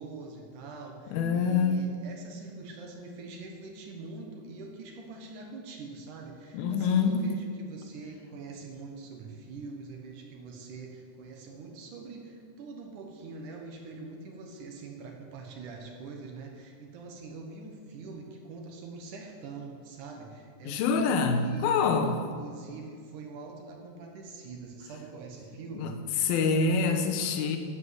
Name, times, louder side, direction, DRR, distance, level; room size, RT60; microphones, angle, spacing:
voice 1, 0.0-21.7 22.1-26.0, right 3 dB, 65° right, 2 dB, 2.1 m, -44 dB
voice 2, 1.1-1.8 6.5-7.2 20.6-22.2 25.8-25.9 26.2-27.6, left 5 dB, 70° left, 5 dB, 2.6 m, -25 dB
11.5 x 8.4 x 7.8 m, 2.1 s
omnidirectional pair, 5.0 m